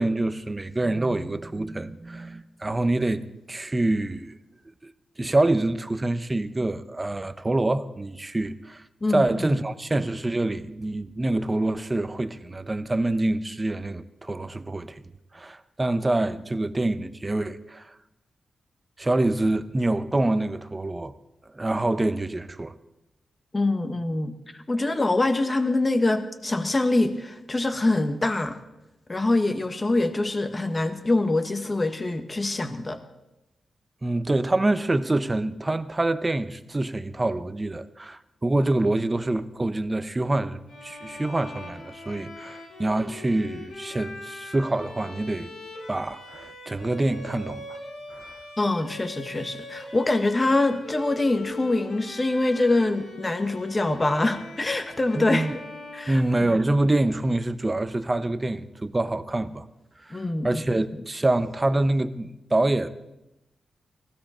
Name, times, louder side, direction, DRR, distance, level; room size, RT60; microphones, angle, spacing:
voice 1, 0.0-4.3 4.8-4.9 5.2-8.8 9.1-15.0 15.3-17.9 19.0-21.1 21.5-22.7 34.0-45.6 45.9-47.6 48.1-48.3 55.2-55.5 56.1-59.7 60.0-62.9, right 2 dB, 20° right, 0.8 m, -26 dB
voice 2, 9.0-9.6 23.5-24.3 24.7-28.6 29.1-33.0 48.6-55.5 55.9-56.6 60.1-60.6 60.9-61.0, left 2 dB, 25° left, 1.4 m, -24 dB
Bowed string instrument, 40.7-56.7, left 2 dB, 85° left, 7.4 m, -42 dB
19.5 x 16.0 x 4.4 m
wide cardioid pair, 110°, 0 cm